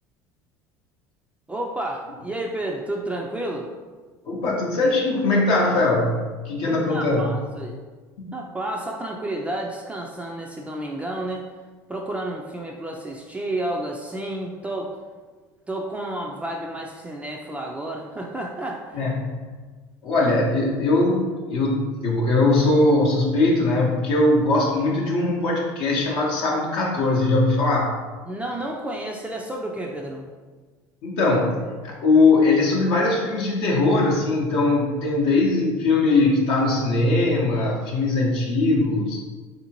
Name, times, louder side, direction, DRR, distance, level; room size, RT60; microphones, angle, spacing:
voice 1, 1.5-3.7 6.7-7.8 8.3-11.5 11.9-14.9 15.7-19.2 28.3-30.3, right 1 dB, 10° right, -1 dB, 0.3 m, -31 dB
voice 2, 4.3-7.3 18.9-19.4 20.0-27.9 31.0-39.2, left 2 dB, 65° left, -3 dB, 0.6 m, -20 dB
3.5 x 2.6 x 2.9 m, 1.4 s
supercardioid pair, 95°, 10 cm